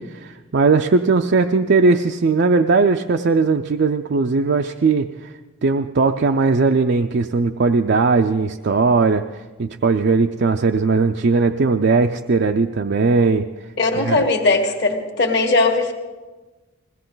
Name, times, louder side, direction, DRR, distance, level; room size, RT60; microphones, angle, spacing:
voice 1, 0.0-5.3 5.6-13.5 14.0-14.2, right 4 dB, 50° right, 5 dB, 0.4 m, -18 dB
voice 2, 13.8-15.9, left 3 dB, 50° left, 4 dB, 1.7 m, -19 dB
21.0 x 17.0 x 3.9 m, 1.2 s
head